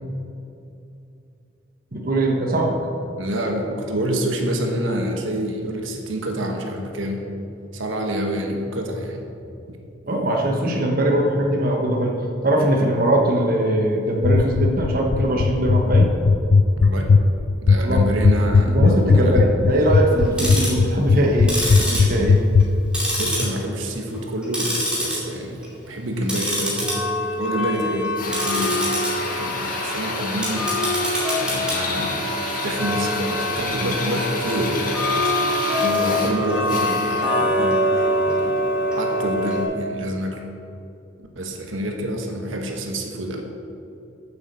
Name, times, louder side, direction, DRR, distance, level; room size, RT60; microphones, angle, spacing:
voice 1, 1.9-2.8 10.1-16.1 17.8-18.0 18.6-22.4, right 1 dB, 50° right, 1 dB, 1.2 m, -21 dB
voice 2, 3.2-7.2 7.7-9.2 9.7-9.8 16.8-17.1 17.6-18.8 19.1-19.4 23.2-26.9 27.3-28.9 29.3-30.7 31.4-32.2 32.5-38.5 39.0-40.4 41.2-43.4, right 1 dB, 85° right, 2 dB, 1.2 m, -27 dB
sound 1, 14.2-22.6, left 4 dB, 65° left, 0.4 m, -15 dB
Tick-tock, 20.2-20.8 21.4-22.7 22.9-23.8 24.1-25.2 25.5-25.8 26.2-39.6, left 1 dB, 5° right, 2.6 m, -24 dB
Drill, 28.2-37.4, left 3 dB, 45° left, 1.6 m, -29 dB
9.5 x 7.1 x 6.8 m, 2.7 s
head